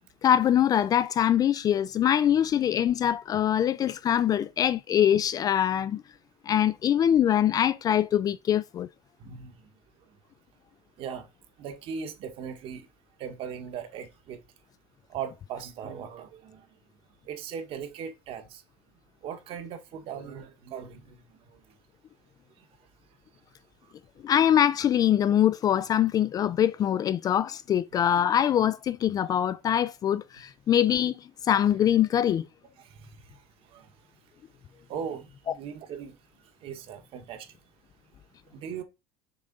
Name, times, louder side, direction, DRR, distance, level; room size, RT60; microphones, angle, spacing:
voice 1, 0.2-6.0 6.5-8.9 24.2-31.2 31.5-32.5, left 10 dB, 30° left, 0.4 m, -23 dB
voice 2, 9.2-9.5 11.0-11.2 11.6-12.8 13.2-14.4 15.1-16.6 17.3-18.6 19.2-21.2 27.9-28.0 32.9-33.2 33.7-33.9 34.9-36.2 36.6-37.5 38.5-38.8, right 7 dB, 50° right, 1.6 m, -38 dB
6.8 x 3.7 x 5.3 m
cardioid pair, 135°, 12 cm